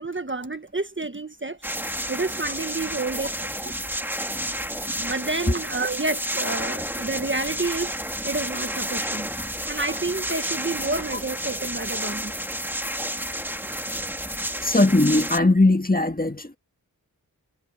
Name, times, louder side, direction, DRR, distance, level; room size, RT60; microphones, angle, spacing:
voice 1, 0.0-1.6 2.1-3.3 3.6-3.7 5.0-8.0 8.2-9.3 9.7-12.3, right 3 dB, 30° right, 1.4 m, -29 dB
sound 1, 1.6-15.4, equal, 5° right, 2.0 m, -31 dB
voice 2, 14.6-16.6, left 2 dB, 25° left, 1.9 m, -19 dB
wide cardioid pair, 40°, 36 cm